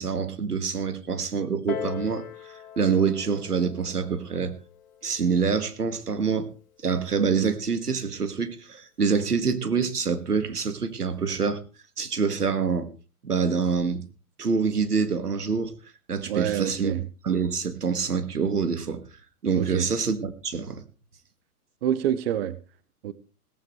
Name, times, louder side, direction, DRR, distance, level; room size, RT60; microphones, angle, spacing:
voice 1, 0.0-4.6 5.0-6.5 6.8-11.6 12.0-12.9 13.2-14.0 14.4-15.7 16.1-16.9 17.2-19.0 19.4-20.8, right 5 dB, 80° right, 1.8 m, -26 dB
Piano, 1.7-6.9 7.7-7.8, left 9 dB, 65° left, 2.6 m, -41 dB
voice 2, 16.3-17.0 19.6-19.9 21.8-22.6 23.0-23.1, right 10 dB, 40° right, 0.9 m, -27 dB
17.0 x 15.0 x 3.1 m
figure-of-eight pair, 115°, 45 cm